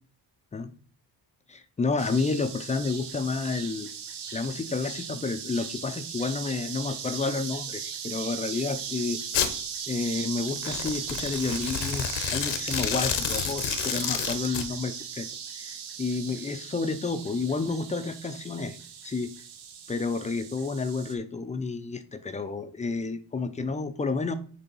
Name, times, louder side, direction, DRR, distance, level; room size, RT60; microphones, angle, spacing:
voice 1, 1.5-3.9 4.3-9.2 9.9-15.3 15.5-18.8 19.0-19.3 19.9-24.3, left 4 dB, 15° left, 10 dB, 0.4 m, -30 dB
sound 1, 2.0-21.1, right 7 dB, 70° right, 1.1 m, -38 dB
Domestic sounds home sounds, 9.3-9.5 10.6-14.7, left 9 dB, 90° left, 1.0 m, -30 dB
7.0 x 3.4 x 5.4 m, 0.43 s
cardioid pair, 170°, 42 cm